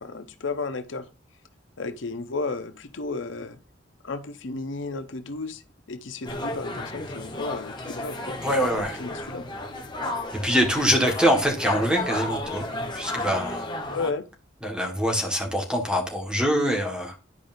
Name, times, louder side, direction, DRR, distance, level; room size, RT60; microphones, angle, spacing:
voice 1, 0.0-1.0 1.8-3.6 4.0-5.6 5.9-8.4 9.0-9.5 13.9-14.2, left 3 dB, 90° left, 0.8 m, -33 dB
sound 1, 6.2-14.1, left 2 dB, 25° left, 1.2 m, -33 dB
voice 2, 8.4-8.9 10.3-12.7 12.9-13.6 14.6-17.1, equal, 5° right, 1.6 m, -24 dB
11.0 x 5.1 x 2.6 m
head